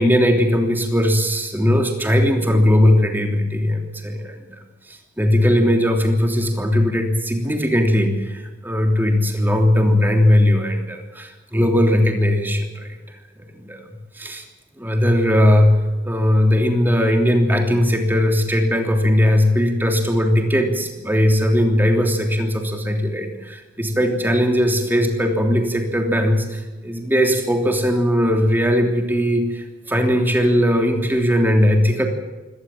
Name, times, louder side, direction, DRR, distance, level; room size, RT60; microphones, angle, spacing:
voice 1, 0.0-4.6 4.9-12.9 13.4-13.8 14.1-14.4 14.8-15.8 16.0-32.0, left 1 dB, 10° right, 3 dB, 3.2 m, -18 dB
24.0 x 18.5 x 7.5 m, 1.2 s
head